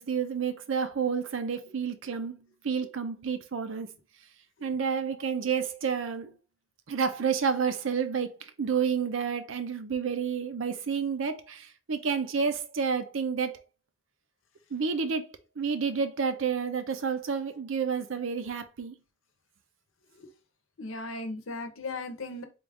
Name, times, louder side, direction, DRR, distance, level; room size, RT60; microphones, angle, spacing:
voice 1, 0.0-3.9 4.6-6.4 6.9-13.6 14.7-15.3 15.6-18.9, right 6 dB, 75° right, 0.5 m, -30 dB
voice 2, 20.8-22.4, left 2 dB, 85° left, 0.7 m, -37 dB
3.8 x 2.4 x 3.4 m
head